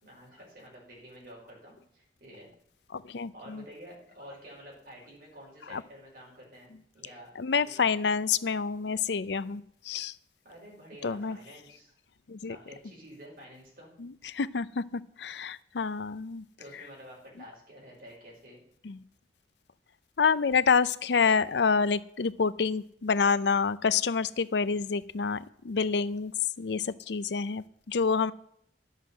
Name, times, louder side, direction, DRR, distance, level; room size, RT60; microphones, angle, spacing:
voice 1, 0.0-2.5 3.3-7.3 10.4-12.0 12.5-13.9 16.6-18.6, equal, 50° right, -3 dB, 5.9 m, -49 dB
voice 2, 2.9-3.6 5.7-5.8 7.4-10.1 11.0-11.4 12.3-12.6 14.0-16.4 18.8-19.0 20.2-26.3 26.6-28.3, left 5 dB, 70° left, 16 dB, 0.5 m, -28 dB
11.0 x 7.4 x 7.4 m, 0.70 s
head